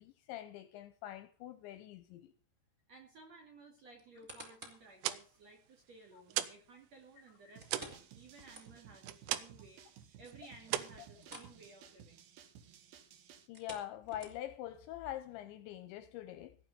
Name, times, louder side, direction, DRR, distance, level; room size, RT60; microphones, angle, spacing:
voice 1, 0.0-2.3 5.1-5.2 13.5-16.6, left 12 dB, 80° left, 2.8 m, -44 dB
voice 2, 2.9-9.8 10.2-12.3, right 3 dB, 45° right, 2.5 m, -57 dB
sound 1, 4.0-4.9 5.4-5.5 7.6-9.1 9.4-9.5 9.9-10.0 11.2-11.6 11.9-12.1 13.4-14.7 15.3-15.4, right 1 dB, 15° right, 3.3 m, -52 dB
sound 2, 4.8-6.7 7.0-9.7 10.0-10.3 10.6-11.7, right 14 dB, 80° right, 3.5 m, -39 dB
sound 3, 7.6-13.5, right 8 dB, 65° right, 2.5 m, -57 dB
17.0 x 6.0 x 9.0 m
omnidirectional pair, 5.8 m